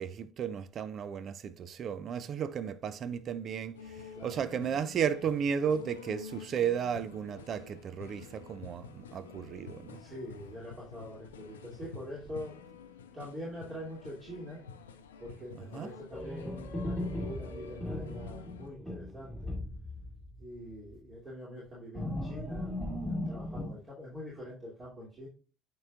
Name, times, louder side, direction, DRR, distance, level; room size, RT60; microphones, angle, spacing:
voice 1, 0.0-10.0 15.7-15.9, right 7 dB, 45° right, 0.5 m, -34 dB
sound 1, 3.7-18.7, left 5 dB, 80° left, 0.6 m, -49 dB
voice 2, 9.9-12.5 13.1-14.6 15.2-19.5 20.4-25.3, equal, 30° right, 2.9 m, -44 dB
sound 2, 16.1-20.4 20.7-20.9 21.9-23.7, left 1 dB, ahead, 2.1 m, -37 dB
9.3 x 4.7 x 2.5 m
figure-of-eight pair, 55°, 0 cm